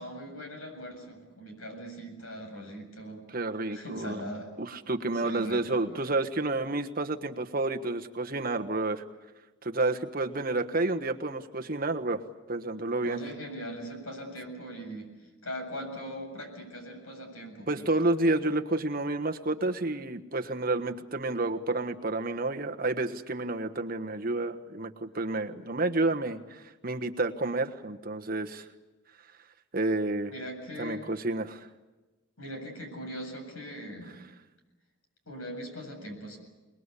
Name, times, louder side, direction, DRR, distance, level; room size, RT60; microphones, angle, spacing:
voice 1, 0.0-3.2 3.7-4.5 5.2-6.1 13.0-17.9 30.3-31.1 32.4-34.2 35.3-36.4, equal, 75° left, 4 dB, 7.7 m, -40 dB
voice 2, 3.3-4.2 4.6-9.0 9.6-12.2 12.5-13.2 17.7-28.6 29.7-30.3 30.8-31.7, right 2 dB, 40° right, 6 dB, 1.3 m, -30 dB
28.0 x 20.5 x 8.4 m, 1.1 s
head